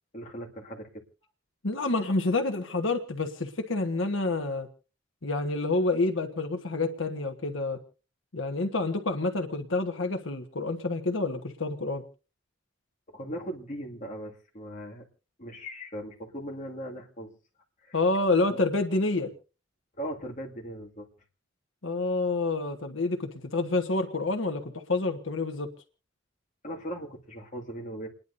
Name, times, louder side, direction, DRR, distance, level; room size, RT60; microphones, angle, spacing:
voice 1, 0.1-1.0 13.1-15.0 15.4-17.3 17.8-18.0 18.5-18.6 19.1-19.3 20.0-21.1 26.6-28.1, equal, 40° left, -1 dB, 2.3 m, -39 dB
voice 2, 1.6-4.7 5.2-7.8 8.3-12.0 17.9-19.3 21.8-25.7, left 3 dB, 90° left, 5 dB, 1.4 m, -28 dB
29.5 x 10.5 x 2.7 m, 0.36 s
head